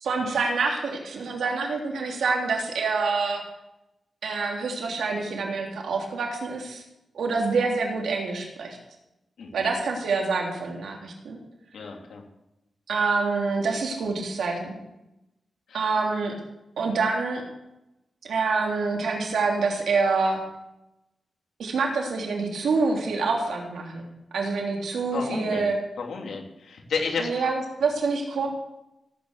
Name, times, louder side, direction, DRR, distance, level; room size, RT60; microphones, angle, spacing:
voice 1, 0.0-3.4 4.2-6.8 7.1-8.8 9.5-11.4 12.9-14.7 15.7-16.3 16.8-17.4 18.3-20.4 21.6-24.1 24.3-25.8 27.2-28.5, right 4 dB, 85° right, 0 dB, 3.3 m, -26 dB
voice 2, 9.4-9.7 11.7-12.2 15.7-15.9 25.1-25.7 26.0-27.5, left 5 dB, 85° left, 1 dB, 3.1 m, -32 dB
17.0 x 9.3 x 6.7 m, 0.91 s
wide cardioid pair, 105°, 0 cm